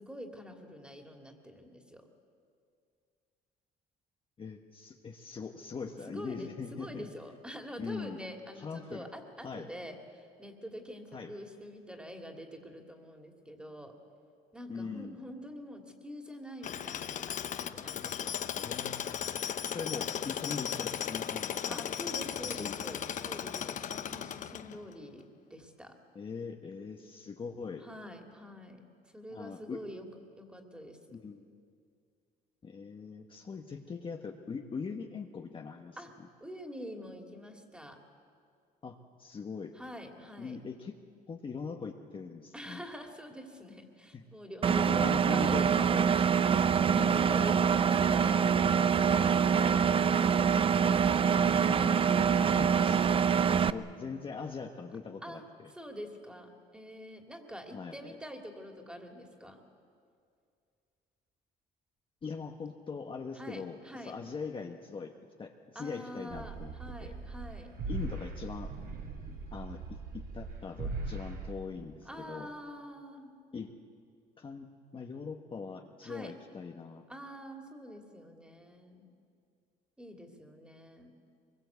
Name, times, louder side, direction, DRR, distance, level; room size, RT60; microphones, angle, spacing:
voice 1, 0.0-2.1 6.1-14.0 14.5-18.3 21.7-26.0 27.8-30.1 30.4-31.2 36.0-36.1 36.4-38.0 39.7-40.6 42.5-45.8 47.1-49.9 55.2-55.4 55.7-59.6 63.3-64.2 65.7-67.8 72.0-73.4 76.0-76.3 77.1-79.0 80.0-81.2, equal, 5° right, 3 dB, 2.8 m, -46 dB
voice 2, 4.4-7.1 7.8-8.2 8.6-9.0 9.4-9.7 11.1-11.3 14.7-15.2 18.6-19.2 19.7-21.8 22.4-22.8 26.1-27.8 29.3-29.8 31.1-31.5 32.6-36.3 38.8-39.7 40.4-40.9 41.3-42.8 44.1-44.2 44.8-46.1 46.9-47.3 51.3-53.0 53.4-55.7 57.7-58.2 62.2-65.1 65.4-66.7 67.0-67.1 67.9-68.7 69.5-69.8 70.1-72.5 73.5-73.7 74.4-77.0, left 5 dB, 30° left, 2 dB, 1.2 m, -41 dB
Tools, 16.6-24.9, left 9 dB, 50° left, 0.8 m, -36 dB
Engine, 44.6-53.7, right 7 dB, 30° right, 0.6 m, -25 dB
sound 1, 66.3-71.5, right 3 dB, 60° right, 3.3 m, -40 dB
23.5 x 22.0 x 8.2 m, 2.3 s
cardioid pair, 110°, 17 cm